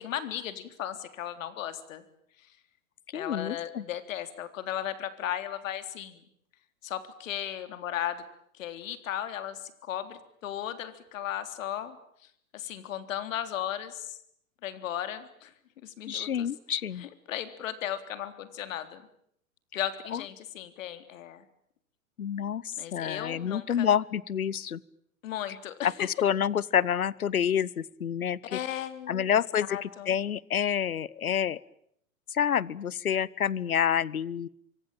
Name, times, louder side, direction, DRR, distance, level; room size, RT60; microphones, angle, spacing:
voice 1, 0.0-2.0 2.4-2.6 3.1-6.3 6.8-8.2 8.5-12.0 12.2-14.2 14.6-15.5 15.8-16.5 17.0-19.0 19.7-21.4 22.8-23.9 25.2-26.1 28.5-29.4 29.7-30.1, left 11 dB, 65° left, 11 dB, 3.7 m, -36 dB
voice 2, 3.1-3.8 16.1-17.0 20.1-20.2 22.2-24.8 25.8-28.6 29.1-31.6 32.3-34.5, left 8 dB, 90° left, 23 dB, 1.0 m, -28 dB
25.0 x 25.0 x 8.9 m, 0.70 s
hypercardioid pair, 105°, 42 cm